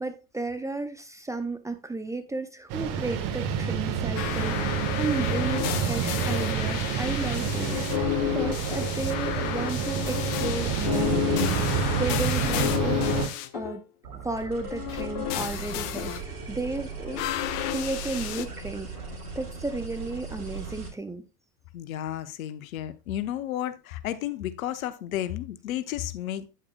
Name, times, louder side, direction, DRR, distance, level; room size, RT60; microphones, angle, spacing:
voice 1, 0.0-13.8 14.2-17.2 17.6-19.0 19.4-21.2, right 2 dB, 5° right, 0.6 m, -34 dB
sound 1, 2.7-13.3, right 8 dB, 45° right, 1.4 m, -28 dB
sound 2, 4.2-13.8 14.6-16.2 17.1-18.5, left 15 dB, 45° left, 0.9 m, -31 dB
sound 3, 14.0-20.9, right 5 dB, 85° right, 2.8 m, -38 dB
voice 2, 21.7-26.5, left 12 dB, 65° left, 1.0 m, -32 dB
8.8 x 8.4 x 2.3 m
figure-of-eight pair, 80°, 45 cm